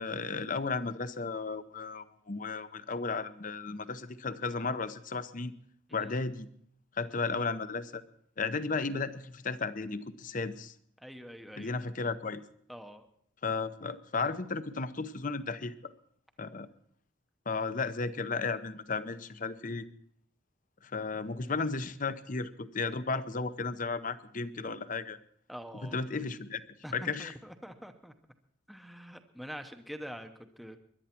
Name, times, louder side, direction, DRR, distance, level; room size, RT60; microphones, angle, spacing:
voice 1, 0.0-5.5 5.9-6.5 7.0-8.0 8.4-10.7 11.6-12.4 13.4-15.9 16.4-16.7 17.5-19.9 20.8-25.2 25.8-26.6 26.9-27.3, left 4 dB, 40° left, 13 dB, 0.7 m, -34 dB
voice 2, 11.0-11.8 12.7-13.1 25.5-26.0 26.8-28.1 28.7-30.8, equal, ahead, 5 dB, 0.8 m, -45 dB
21.0 x 11.5 x 4.4 m, 0.66 s
head